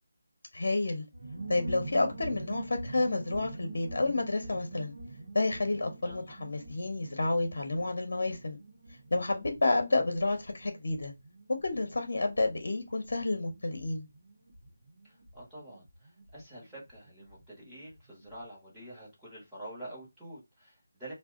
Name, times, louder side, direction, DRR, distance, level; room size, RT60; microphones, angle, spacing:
voice 1, 0.5-1.0 1.5-4.9 5.3-8.6 9.1-11.1 11.6-14.1, left 2 dB, 55° left, 0.9 m, -30 dB
sound 1, 1.1-17.4 17.7-17.8 18.0-18.4, right 2 dB, 80° right, 0.9 m, -45 dB
voice 2, 15.0-21.1, right 1 dB, 5° right, 1.0 m, -47 dB
2.7 x 2.1 x 3.7 m
figure-of-eight pair, 175°, 0 cm